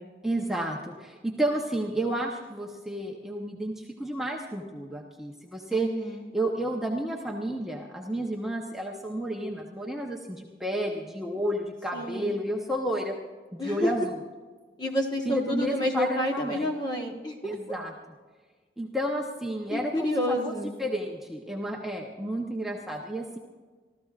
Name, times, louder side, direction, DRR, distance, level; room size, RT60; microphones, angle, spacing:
voice 1, 0.2-5.9 6.3-13.2 13.5-14.1 15.3-16.7 17.4-17.9 18.8-20.5 20.8-23.4, right 1 dB, ahead, -1 dB, 0.9 m, -31 dB
voice 2, 5.7-6.2 11.9-12.3 13.6-13.9 14.8-17.8 19.7-20.7, left 1 dB, 25° left, 1 dB, 1.3 m, -29 dB
27.0 x 14.0 x 2.5 m, 1.4 s
head